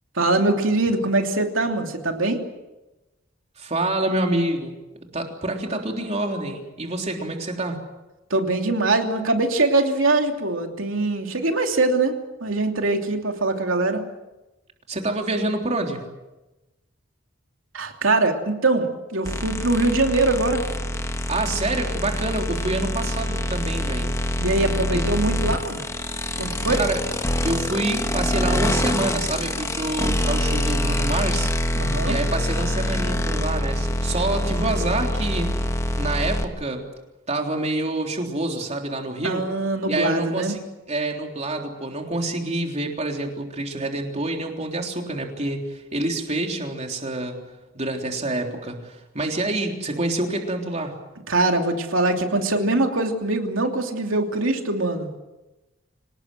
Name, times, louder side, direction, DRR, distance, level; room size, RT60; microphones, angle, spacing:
voice 1, 0.1-2.4 8.3-14.0 17.7-20.6 24.4-25.8 26.4-26.8 31.7-32.2 39.2-40.5 51.3-55.1, right 2 dB, 90° right, 4 dB, 3.0 m, -22 dB
voice 2, 3.6-4.8 5.1-7.8 14.9-16.0 21.3-24.2 24.9-25.1 26.7-27.0 27.4-31.5 32.1-35.6 36.0-36.9 37.3-39.5 39.9-40.6 40.9-47.4 47.7-51.0, right 2 dB, 35° right, 2 dB, 3.6 m, -27 dB
sound 1, 19.2-36.4, left 1 dB, 15° left, 1.5 m, -25 dB
26.0 x 19.0 x 7.7 m, 1.0 s
head